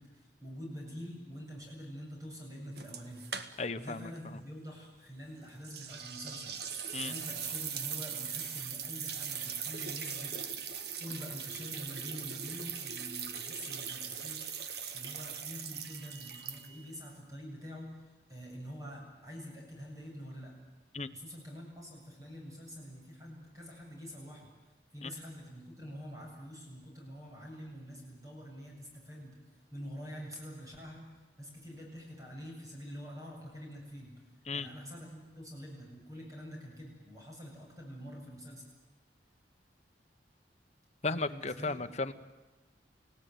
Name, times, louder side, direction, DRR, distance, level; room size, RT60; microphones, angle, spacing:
voice 1, 0.0-10.4 11.0-14.4 14.9-17.9 18.3-20.6 21.1-24.5 24.9-29.4 29.7-31.0 31.4-34.1 34.5-38.6 41.1-41.7, equal, 20° right, -1 dB, 7.8 m, -46 dB
sound 1, 2.8-3.9 4.2-4.3 5.6-16.9, right 7 dB, 65° right, 1.7 m, -40 dB
voice 2, 3.6-4.1 6.9-7.1 20.9-21.1 25.0-25.1 34.5-34.7 41.0-42.1, left 3 dB, 40° left, 8 dB, 1.2 m, -35 dB
29.5 x 17.0 x 9.4 m, 1.2 s
head